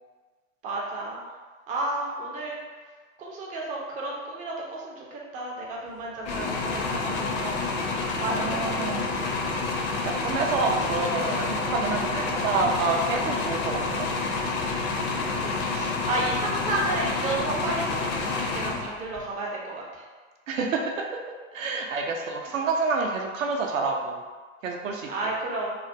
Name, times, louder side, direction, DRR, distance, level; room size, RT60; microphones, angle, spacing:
voice 1, 0.6-1.2 1.7-2.6 3.2-7.7 8.2-9.4 15.3-20.1 25.1-25.8, right 2 dB, 20° right, -3 dB, 0.3 m, -32 dB
sound 1, 6.3-19.3, left 3 dB, 45° left, 0.5 m, -28 dB
voice 2, 8.2-9.1 10.0-14.1 20.5-21.0 21.5-24.2 24.6-25.1, right 4 dB, 70° right, 1 dB, 0.5 m, -28 dB
2.4 x 2.1 x 2.5 m, 1.4 s
figure-of-eight pair, 80°, 40 cm